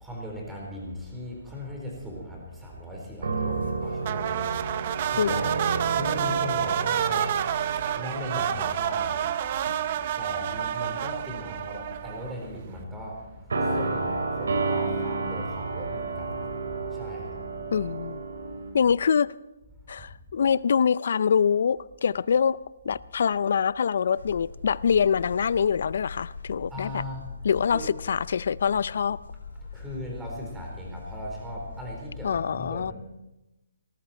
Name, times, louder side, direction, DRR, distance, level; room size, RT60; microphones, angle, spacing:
voice 1, 0.0-5.6 5.9-17.8 18.6-18.7 20.0-20.1 26.7-27.9 29.6-32.9, equal, 5° right, -1 dB, 4.0 m, -38 dB
sound 1, 3.2-9.3 9.7-9.9 10.9-11.6 13.5-18.7, right 4 dB, 80° right, 2.7 m, -31 dB
sound 2, 4.0-12.5, right 10 dB, 40° right, 0.6 m, -29 dB
voice 2, 17.7-18.2 18.7-19.3 19.9-27.0 27.4-29.2 32.2-32.9, left 7 dB, 60° left, 20 dB, 0.4 m, -25 dB
sound 3, 24.2-32.3, left 5 dB, 75° left, 2.6 m, -42 dB
19.5 x 13.5 x 4.4 m, 0.98 s
hypercardioid pair, 160°, 0 cm